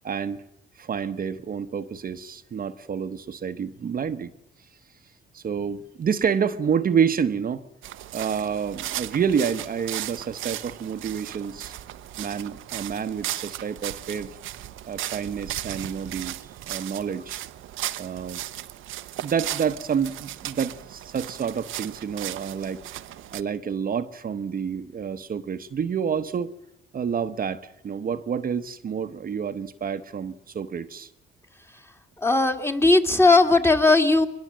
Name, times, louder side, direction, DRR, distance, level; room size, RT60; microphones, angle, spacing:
voice 1, 0.0-0.4 0.8-4.3 5.3-7.6 8.1-11.7 12.2-14.3 14.8-16.3 16.7-17.4 18.0-18.4 19.2-22.8 23.3-26.5 26.9-31.1, right 7 dB, 45° right, 8 dB, 1.0 m, -28 dB
sound 1, 7.8-23.4, right 13 dB, 85° right, 0.9 m, -36 dB
voice 2, 32.2-34.3, left 3 dB, 10° left, 6 dB, 2.2 m, -18 dB
22.5 x 21.0 x 7.6 m, 0.78 s
cardioid pair, 90°, 20 cm